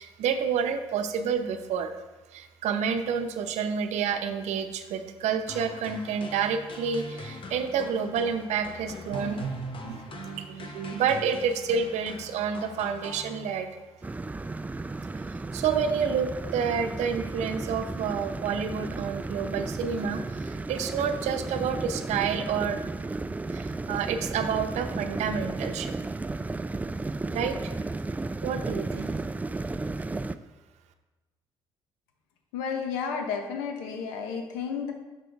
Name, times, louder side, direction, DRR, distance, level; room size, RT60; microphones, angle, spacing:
voice 1, 0.0-1.9 2.3-13.7 15.5-22.9 23.5-26.0 27.3-27.7 28.4-29.1, right 6 dB, 70° right, 8 dB, 0.7 m, -29 dB
sound 1, 5.5-13.8, left 3 dB, 45° left, 1.1 m, -43 dB
sound 2, 14.0-30.4, right 3 dB, 15° right, 0.3 m, -34 dB
voice 2, 32.5-34.9, left 6 dB, 85° left, 4 dB, 0.9 m, -32 dB
6.7 x 6.2 x 3.4 m, 1.2 s
hypercardioid pair, 60°, 12 cm